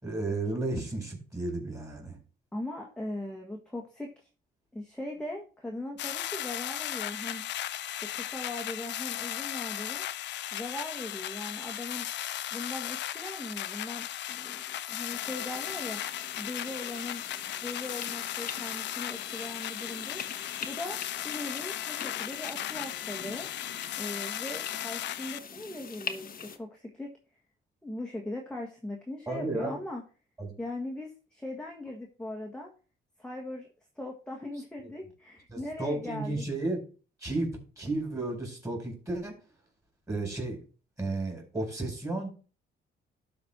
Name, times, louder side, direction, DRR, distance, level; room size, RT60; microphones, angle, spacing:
voice 1, 0.0-2.2 29.3-29.8 30.4-30.5 34.8-34.9 35.5-36.8 37.2-37.5 37.8-39.3 40.1-40.6 41.0-42.3, right 2 dB, 15° right, 0 dB, 4.6 m, -33 dB
voice 2, 2.5-4.1 4.7-7.5 8.0-10.0 10.5-12.1 12.5-16.0 16.4-17.2 17.6-20.2 20.6-21.0 21.2-23.5 24.0-27.1 27.8-30.0 30.6-32.7 33.2-33.7 34.0-36.5, left 1 dB, 5° left, -1 dB, 1.4 m, -39 dB
sound 1, 6.0-25.4, left 12 dB, 65° left, 0.5 m, -36 dB
sound 2, 15.1-26.6, left 6 dB, 45° left, 1.0 m, -44 dB
12.0 x 4.4 x 4.3 m, 0.37 s
cardioid pair, 90°, 20 cm